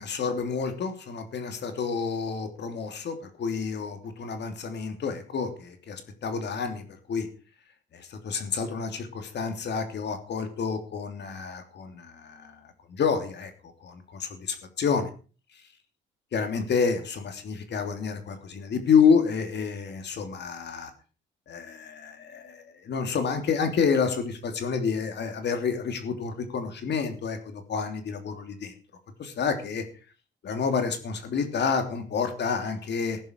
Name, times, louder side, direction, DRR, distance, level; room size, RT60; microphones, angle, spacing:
voice 1, 0.0-7.3 7.9-15.1 16.3-20.9 21.5-28.7 29.2-29.8 30.4-33.2, left 6 dB, 60° left, 7 dB, 3.0 m, -29 dB
15.0 x 11.0 x 4.6 m, 0.36 s
cardioid pair, 90°, 20 cm